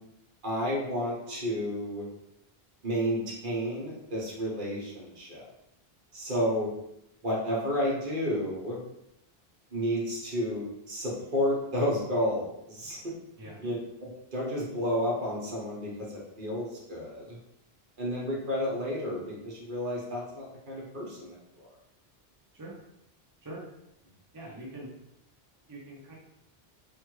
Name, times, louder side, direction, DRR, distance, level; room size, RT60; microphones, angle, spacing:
voice 1, 0.4-2.0 2.8-5.4 6.1-6.7 7.2-8.8 9.7-13.0 13.4-17.4 18.0-21.7, equal, 55° right, -4 dB, 1.1 m, -31 dB
voice 2, 24.3-24.9 25.7-26.1, right 1 dB, 25° right, -4 dB, 0.6 m, -43 dB
3.3 x 2.2 x 3.0 m, 0.82 s
omnidirectional pair, 1.0 m